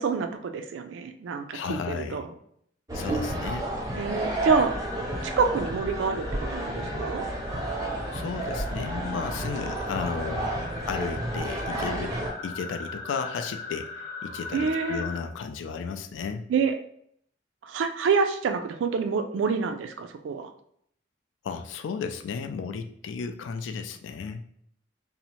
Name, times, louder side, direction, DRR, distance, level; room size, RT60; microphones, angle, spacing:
voice 1, 0.0-2.3 4.0-4.7 5.2-7.3 14.5-15.1 16.5-16.7 17.7-20.5, right 5 dB, 85° right, 7 dB, 0.3 m, -27 dB
voice 2, 1.5-2.2 2.9-3.7 8.1-16.5 21.4-24.4, left 5 dB, 90° left, 8 dB, 0.3 m, -34 dB
sound 1, 2.9-12.3, right 1 dB, 20° right, 0.5 m, -31 dB
sound 2, 4.4-15.2, left 3 dB, 70° left, 0.8 m, -40 dB
2.7 x 2.0 x 2.8 m, 0.69 s
head